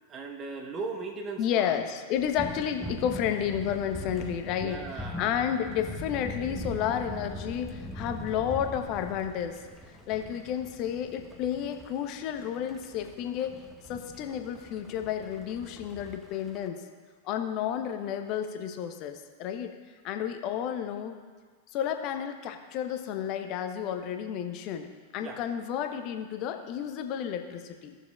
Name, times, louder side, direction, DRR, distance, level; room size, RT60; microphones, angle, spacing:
voice 1, 0.1-1.7 4.6-5.3 25.2-25.4, right 4 dB, 25° right, 4 dB, 1.2 m, -37 dB
voice 2, 1.4-4.8 5.2-13.6 13.9-16.8 17.2-19.7 20.0-21.2 21.7-28.0, left 9 dB, 40° left, 6 dB, 0.8 m, -31 dB
sound 1, 2.2-16.7, equal, 5° right, 1.0 m, -42 dB
16.5 x 6.8 x 2.4 m, 1.5 s
figure-of-eight pair, 90°, 0 cm